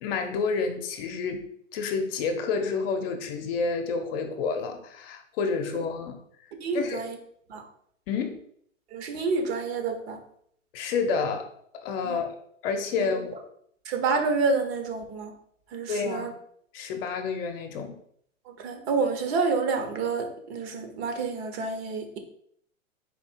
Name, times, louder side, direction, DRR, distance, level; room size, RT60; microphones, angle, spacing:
voice 1, 0.0-1.5 1.7-6.2 6.7-7.0 8.1-8.4 10.7-11.5 11.7-12.3 12.6-13.4 15.9-16.3 16.7-17.9, left 5 dB, 45° left, 5 dB, 0.8 m, -29 dB
voice 2, 6.5-7.2 7.5-7.6 8.9-10.2 12.0-12.2 13.0-13.1 13.8-15.3 15.7-16.3 18.5-22.2, right 4 dB, 50° right, 5 dB, 1.1 m, -28 dB
4.3 x 2.7 x 4.4 m, 0.66 s
hypercardioid pair, 110°, 40 cm